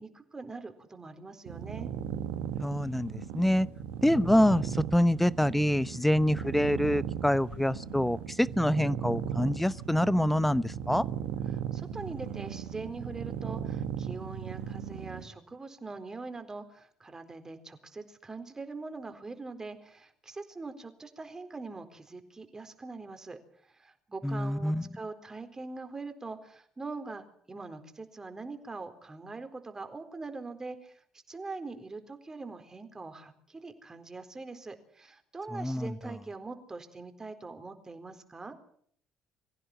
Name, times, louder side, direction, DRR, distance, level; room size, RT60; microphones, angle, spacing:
voice 1, 0.0-1.9 11.5-23.4 23.7-38.6, right 3 dB, 25° right, 8 dB, 4.2 m, -43 dB
sound 1, 1.5-15.3, right 9 dB, 75° right, 1.7 m, -37 dB
voice 2, 2.6-3.7 4.0-11.0 24.2-24.9 35.5-35.9, left 1 dB, 5° left, 19 dB, 0.9 m, -26 dB
24.5 x 15.5 x 7.9 m, 0.62 s
hypercardioid pair, 55°, 2 cm